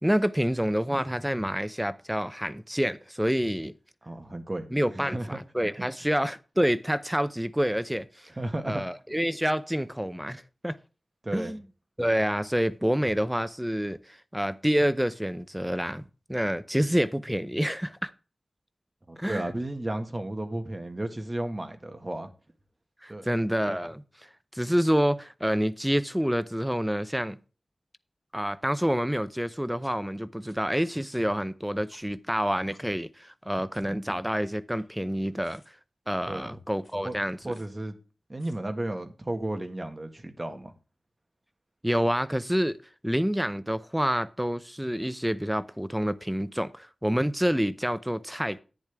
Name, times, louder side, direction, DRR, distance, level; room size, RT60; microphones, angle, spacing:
voice 1, 0.0-3.7 4.7-8.3 8.6-10.8 11.3-11.6 12.0-18.1 19.2-19.5 23.0-24.0 24.5-27.4 28.3-35.6 36.1-37.4 41.8-42.8 43.0-48.6, equal, 5° right, 0.6 m, -28 dB
voice 2, 4.0-4.7 4.9-5.4 8.4-8.8 11.2-11.6 19.1-22.3 23.1-23.3 36.3-36.6 37.0-37.1 37.4-37.9 38.3-40.7, right 1 dB, 30° right, 1.7 m, -33 dB
sound 1, 28.9-29.0 29.8-29.9 30.5-30.6 31.1-31.2 31.9-32.2 32.7-32.8 33.7-34.0 34.5-35.2 35.4-35.7 36.8-36.9 37.5-37.7 38.4-38.5, left 2 dB, 40° left, 4.7 m, -58 dB
10.5 x 9.8 x 3.5 m
wide cardioid pair, 70°, 0 cm